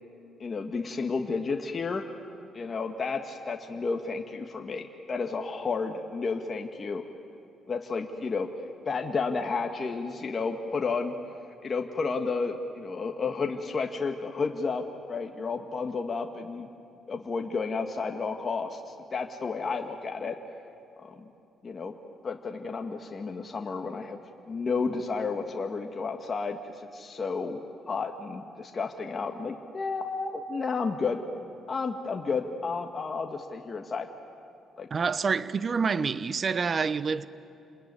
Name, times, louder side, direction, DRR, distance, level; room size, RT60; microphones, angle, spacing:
voice 1, 0.4-2.0 2.5-7.0 7.7-8.5 8.8-11.1 11.6-16.7 17.1-18.8 19.1-20.4 21.0-21.3 21.6-21.9 22.2-24.2 24.5-27.6 27.9-31.2 31.7-34.1 34.8-34.9, left 4 dB, 40° left, 1.5 m, -31 dB
voice 2, 34.9-37.2, right 5 dB, 40° right, 0.9 m, -27 dB
28.5 x 20.5 x 9.6 m
cardioid pair, 90°, 0 cm